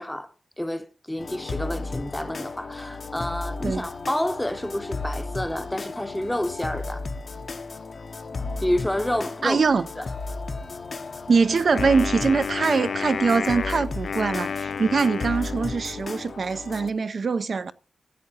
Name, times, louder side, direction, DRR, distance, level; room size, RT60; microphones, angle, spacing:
voice 1, 0.0-7.0 8.6-10.1, left 1 dB, 5° left, 0.7 m, -29 dB
sound 1, 1.2-16.9, left 3 dB, 45° left, 0.8 m, -34 dB
voice 2, 9.4-9.9 11.3-17.7, right 4 dB, 50° right, 0.4 m, -23 dB
Wind instrument woodwind instrument, 11.7-16.2, left 6 dB, 60° left, 0.4 m, -31 dB
15.5 x 8.3 x 2.8 m
wide cardioid pair, 170°, 0 cm